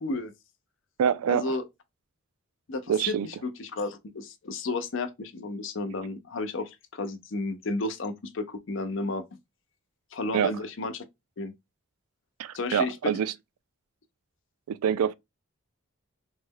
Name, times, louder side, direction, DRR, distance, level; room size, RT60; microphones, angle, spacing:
voice 1, 0.0-0.3 1.3-1.6 2.7-9.2 10.1-11.0 11.4-11.5 12.5-13.0, left 3 dB, 60° left, 0.5 m, -32 dB
voice 2, 1.0-1.6 2.9-3.3 10.3-10.5 12.4-13.3 14.7-15.1, right 8 dB, 90° right, 0.3 m, -25 dB
3.1 x 2.1 x 3.5 m
head